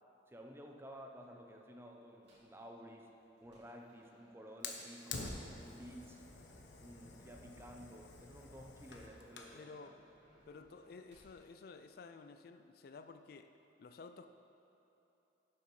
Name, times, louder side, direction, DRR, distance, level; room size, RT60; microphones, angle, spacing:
voice 1, 0.3-3.1 3.4-6.2 6.8-9.9, equal, 15° right, 2 dB, 0.7 m, -53 dB
sound 1, 2.2-2.6 3.1-11.4, right 1 dB, 85° right, 2.7 m, -70 dB
Fire, 4.6-9.6, left 3 dB, 90° left, 1.0 m, -48 dB
voice 2, 9.5-10.0 10.5-13.5 13.8-14.3, left 4 dB, 55° left, 8 dB, 0.4 m, -53 dB
11.0 x 7.9 x 4.8 m, 2.9 s
head